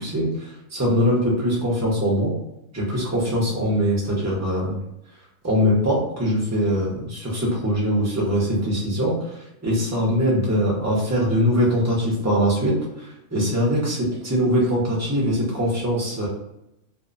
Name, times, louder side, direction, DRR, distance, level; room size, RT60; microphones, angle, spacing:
voice 1, 0.0-2.3 2.7-4.8 5.4-16.3, equal, 25° right, -5 dB, 0.3 m, -22 dB
2.6 x 2.0 x 2.5 m, 0.83 s
omnidirectional pair, 1.6 m